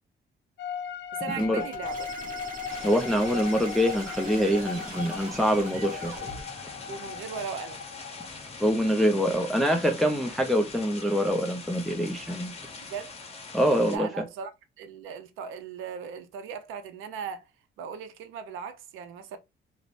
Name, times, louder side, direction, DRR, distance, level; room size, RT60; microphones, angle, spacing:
sound 1, 0.6-8.3, left 8 dB, 65° left, 0.4 m, -38 dB
voice 1, 1.1-2.4 6.9-7.8 12.8-13.1 13.9-14.5 14.8-17.4 17.8-19.4, right 6 dB, 90° right, 0.5 m, -38 dB
sound 2, 1.4-6.4, right 4 dB, 45° right, 1.1 m, -42 dB
sound 3, 2.7-14.0, left 4 dB, 30° left, 0.7 m, -43 dB
voice 2, 2.8-6.1 8.6-12.5 13.5-14.2, equal, ahead, 0.4 m, -25 dB
2.5 x 2.0 x 3.1 m
cardioid pair, 90°, 20 cm